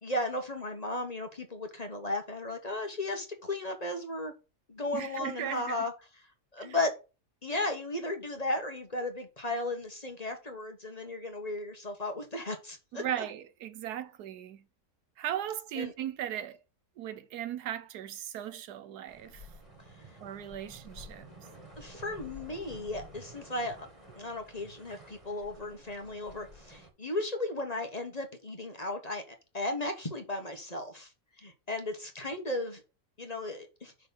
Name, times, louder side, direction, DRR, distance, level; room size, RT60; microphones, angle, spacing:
voice 1, 0.0-4.3 4.7-5.9 6.5-6.9 7.4-13.0 15.8-15.9 21.8-23.9 24.2-31.1 31.4-32.8 33.2-33.9, left 2 dB, 25° left, 1.3 m, -35 dB
voice 2, 4.9-5.9 6.6-6.8 12.9-14.6 15.2-16.6 17.0-19.4 20.2-21.3, right 11 dB, 90° right, 1.3 m, -37 dB
sound 1, 19.1-26.9, equal, 20° right, 2.1 m, -51 dB
6.1 x 4.2 x 5.4 m
omnidirectional pair, 1.6 m